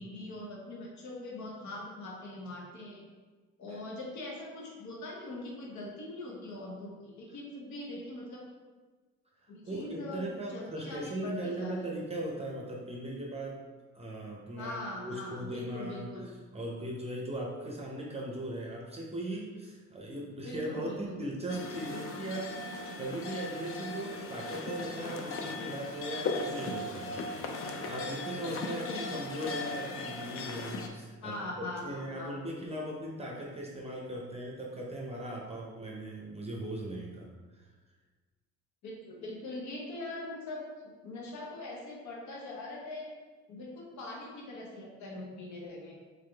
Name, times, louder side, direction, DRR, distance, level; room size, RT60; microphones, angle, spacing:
voice 1, 0.0-3.0 3.6-8.4 9.5-11.7 14.5-16.3 20.4-21.2 28.6-29.0 31.2-32.3 38.8-40.6 41.0-43.1 43.5-45.9, left 2 dB, 70° left, -2 dB, 0.9 m, -42 dB
voice 2, 9.4-13.6 13.9-27.2 27.5-31.4 31.8-37.7, right 1 dB, 20° right, -2 dB, 0.7 m, -39 dB
sound 1, 21.5-30.9, left 3 dB, 50° left, 0.6 m, -38 dB
3.6 x 3.6 x 3.3 m, 1.3 s
cardioid pair, 90°, 30 cm